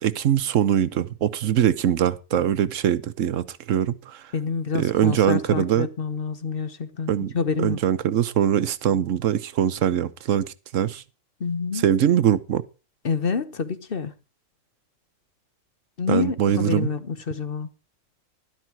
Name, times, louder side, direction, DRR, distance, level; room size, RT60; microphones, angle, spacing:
voice 1, 0.0-4.2 4.7-5.9 7.1-7.3 7.6-11.0 11.8-12.6 16.1-16.9, right 10 dB, 75° right, 1.2 m, -22 dB
voice 2, 4.3-7.8 11.4-11.8 13.0-14.1 16.0-17.7, left 5 dB, 45° left, 1.1 m, -27 dB
12.0 x 12.0 x 4.5 m
omnidirectional pair, 1.4 m